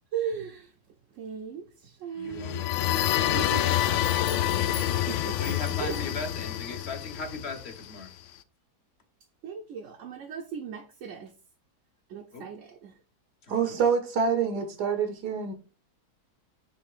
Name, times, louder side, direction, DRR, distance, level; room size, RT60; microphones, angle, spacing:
voice 1, 0.1-0.7 1.1-2.7 3.1-3.9 4.8-5.4 5.8-6.0 9.4-11.3 12.1-12.9, right 7 dB, 60° right, 0.9 m, -37 dB
voice 2, 2.1-3.3 5.4-8.1 12.3-12.5 13.4-13.8, left 3 dB, 45° left, 1.1 m, -39 dB
sound 1, 2.3-8.1, left 12 dB, 70° left, 0.7 m, -27 dB
voice 3, 13.5-15.5, right 6 dB, 85° right, 1.6 m, -26 dB
5.9 x 3.4 x 4.7 m
omnidirectional pair, 1.7 m